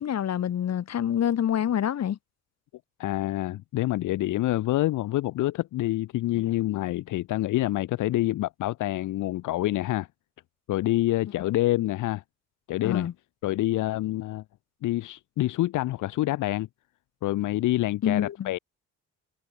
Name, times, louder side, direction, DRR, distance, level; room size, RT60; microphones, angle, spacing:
voice 1, 0.0-2.2 12.8-13.1 18.0-18.5, left 10 dB, 60° left, 2.4 m, -26 dB
voice 2, 3.0-10.1 10.7-12.2 12.7-13.1 13.4-14.4 14.8-16.7 17.2-18.6, left 16 dB, 80° left, 1.0 m, -27 dB
cardioid pair, 90°, 30 cm